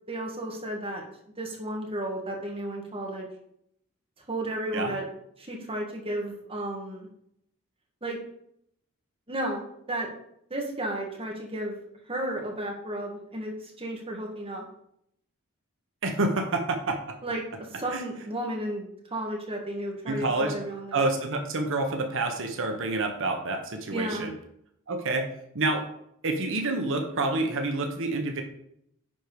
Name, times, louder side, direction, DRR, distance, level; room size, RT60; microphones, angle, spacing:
voice 1, 0.1-1.0 1.4-3.3 4.3-5.0 5.4-7.1 8.0-8.2 9.3-9.6 9.9-10.1 10.5-11.7 12.1-14.6 17.2-17.4 17.7-18.9 19.1-21.0 23.9-24.3, right 1 dB, 25° right, 0 dB, 2.1 m, -33 dB
voice 2, 16.0-17.0 17.9-18.0 20.1-20.5 20.9-24.3 24.9-25.3 25.5-25.8 26.2-28.4, right 2 dB, 60° right, 4 dB, 1.2 m, -28 dB
10.0 x 4.7 x 5.1 m, 0.73 s
head